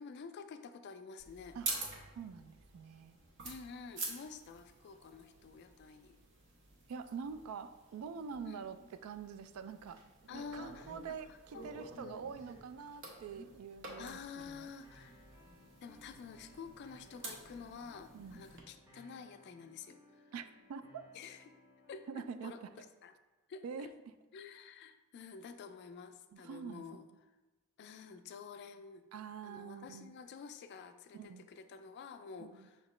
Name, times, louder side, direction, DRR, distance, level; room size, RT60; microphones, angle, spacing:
voice 1, 0.0-1.6 3.4-6.2 8.4-8.9 10.3-10.9 11.3-11.7 12.0-12.2 14.0-15.2 15.8-20.3 21.1-21.5 21.9-23.1 23.5-23.9 24.3-27.0 27.8-29.0 29.4-32.8, left 5 dB, 55° left, 9 dB, 0.3 m, -50 dB
sound 1, 1.2-18.6, right 3 dB, 60° right, 0.8 m, -49 dB
voice 2, 2.2-3.2 6.9-14.7 18.1-18.4 20.3-20.4 20.7-21.0 22.1-22.7 23.6-23.9 26.3-26.8 29.1-30.1 31.1-31.5 32.4-32.7, right 6 dB, 85° right, 13 dB, 0.3 m, -45 dB
sound 2, 14.8-22.8, left 1 dB, 10° right, 0.7 m, -63 dB
5.4 x 2.9 x 3.1 m, 1.1 s
head